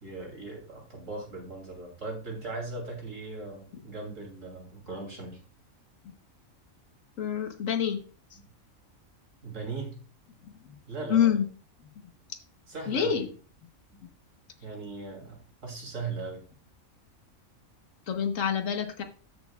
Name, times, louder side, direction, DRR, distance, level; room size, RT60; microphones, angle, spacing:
voice 1, 0.0-5.4 8.3-8.5 9.4-9.9 10.9-11.3 12.7-13.3 13.9-14.0 14.6-16.4, right 3 dB, 70° right, 0 dB, 3.2 m, -38 dB
voice 2, 7.2-8.0 11.1-11.5 12.9-13.3 18.1-19.0, left 8 dB, 75° left, 7 dB, 1.4 m, -26 dB
14.0 x 6.3 x 2.3 m, 0.39 s
omnidirectional pair, 1.4 m